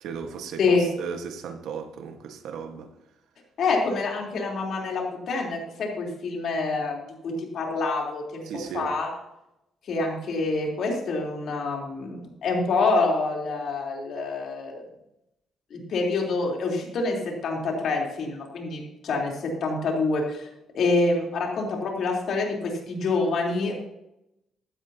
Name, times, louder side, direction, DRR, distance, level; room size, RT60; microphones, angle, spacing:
voice 1, 0.0-2.9 8.5-8.9, right 6 dB, 80° right, 1.5 m, -36 dB
voice 2, 3.6-8.4 8.7-9.1 9.9-14.8 15.7-20.5 20.7-23.7, left 3 dB, 65° left, 3.7 m, -26 dB
16.0 x 12.0 x 2.9 m
cardioid pair, 90°, 0 cm